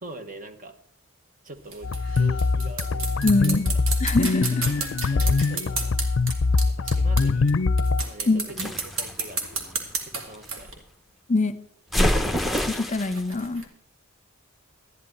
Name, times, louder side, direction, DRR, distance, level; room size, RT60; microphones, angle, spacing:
voice 1, 0.0-0.8 1.4-3.8 5.1-6.0 6.7-7.6 8.1-9.7 10.0-10.8, right 2 dB, 40° right, 8 dB, 1.1 m, -43 dB
sound 1, 1.6-7.5 7.8-10.7 12.0-13.7, right 4 dB, 75° right, 2.4 m, -33 dB
sound 2, 1.8-8.0, left 3 dB, 60° left, 0.5 m, -23 dB
voice 2, 3.2-3.6 4.0-4.7 8.3-8.7 11.3-11.6 12.7-13.7, left 2 dB, 35° left, 12 dB, 0.8 m, -24 dB
sound 3, 8.6-10.5 11.9-13.2, left 1 dB, ahead, 0.8 m, -26 dB
13.5 x 11.0 x 4.4 m, 0.65 s
head